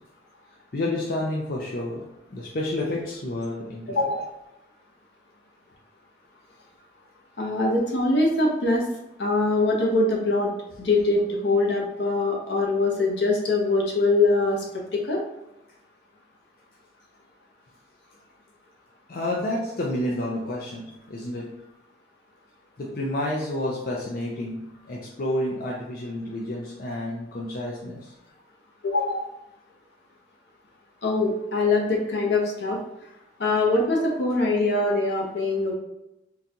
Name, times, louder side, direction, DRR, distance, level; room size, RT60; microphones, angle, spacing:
voice 1, 0.7-2.0 2.3-4.0 19.1-21.5 22.8-28.1, left 1 dB, 55° left, -3 dB, 0.5 m, -30 dB
voice 2, 3.9-4.3 7.4-8.8 9.2-10.5 10.8-14.6 15.1-15.2 28.8-29.3 31.0-32.8 33.4-35.7, left 2 dB, 80° left, -2 dB, 0.8 m, -23 dB
3.8 x 2.3 x 2.7 m, 0.92 s
head